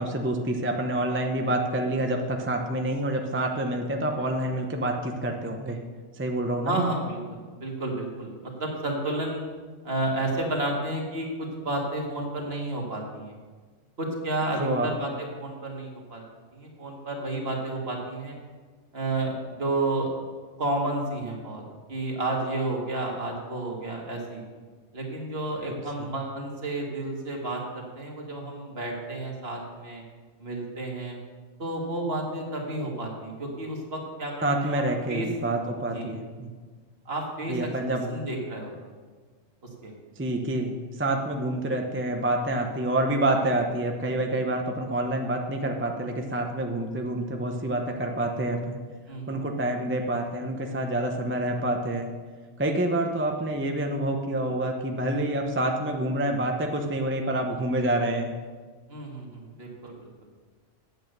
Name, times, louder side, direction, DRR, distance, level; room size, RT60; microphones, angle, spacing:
voice 1, 0.0-5.8 6.1-6.8 14.6-14.9 25.6-25.7 34.4-36.5 37.5-38.2 40.2-48.8 49.3-52.1 52.6-58.3, right 1 dB, 10° right, 3 dB, 0.7 m, -27 dB
voice 2, 6.6-9.4 9.8-13.3 14.0-18.4 18.9-20.1 20.6-21.6 21.9-24.4 24.9-30.0 30.4-31.2 31.6-34.3 34.6-34.8 35.1-35.3 35.9-36.2 37.1-37.7 38.1-38.7 39.8-39.9 49.1-49.3 58.9-60.1, right 2 dB, 55° right, -1 dB, 2.1 m, -31 dB
9.1 x 8.1 x 6.7 m, 1.4 s
omnidirectional pair, 1.2 m